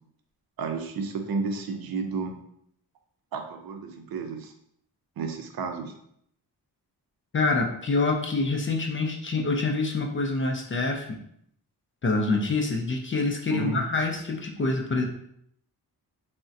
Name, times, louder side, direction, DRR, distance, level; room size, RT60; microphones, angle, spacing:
voice 1, 0.6-2.4 3.3-4.5 5.2-5.9 13.5-13.8, right 4 dB, 65° right, 5 dB, 0.6 m, -32 dB
voice 2, 7.3-11.2 12.0-15.1, left 3 dB, 30° left, 1 dB, 0.4 m, -26 dB
3.7 x 2.1 x 2.6 m, 0.71 s
cardioid pair, 85°, 39 cm